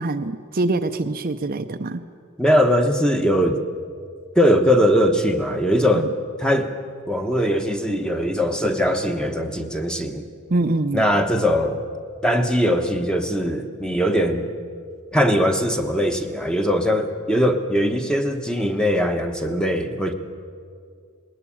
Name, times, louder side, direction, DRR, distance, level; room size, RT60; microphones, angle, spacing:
voice 1, 0.0-2.0 6.0-6.1 10.5-11.1, right 2 dB, 40° right, 8 dB, 0.6 m, -24 dB
voice 2, 2.4-3.6 4.3-6.1 6.4-6.7 7.1-10.3 10.9-11.8 12.2-14.4 15.1-20.1, equal, 5° left, 6 dB, 1.1 m, -20 dB
20.5 x 18.5 x 8.6 m, 2.2 s
head